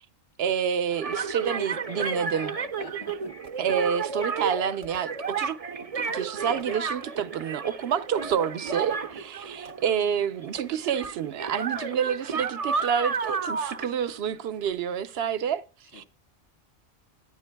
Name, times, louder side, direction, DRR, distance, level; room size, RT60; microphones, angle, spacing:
voice 1, 0.4-2.5 3.6-5.6 5.9-15.6 15.9-16.0, right 8 dB, 60° right, 0.9 m, -28 dB
sound 1, 0.9-10.1 10.4-14.7, right 5 dB, 35° right, 0.7 m, -32 dB
voice 2, 1.4-3.4 9.9-10.3 15.9-16.1, left 4 dB, 70° left, 2.0 m, -44 dB
Fireworks, 3.4-4.1 4.8-5.7 6.6-7.3 8.3-9.2 9.7-10.1 10.5-11.1, right 3 dB, 85° right, 2.1 m, -55 dB
14.0 x 10.5 x 2.2 m
omnidirectional pair, 1.2 m